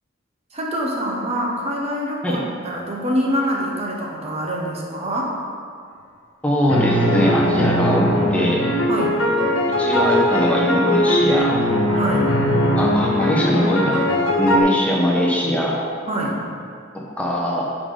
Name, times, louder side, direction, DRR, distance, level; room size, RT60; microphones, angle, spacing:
voice 1, 0.5-5.3 8.9-9.2 11.9-12.3 16.1-16.4, equal, 30° right, -2 dB, 1.0 m, -25 dB
voice 2, 6.4-8.6 9.8-11.6 12.7-14.1 14.4-15.8 16.9-17.8, left 1 dB, 5° left, -4 dB, 1.0 m, -21 dB
sound 1, 6.7-14.6, equal, 80° left, 1.3 m, -20 dB
10.5 x 5.0 x 3.8 m, 2.2 s
head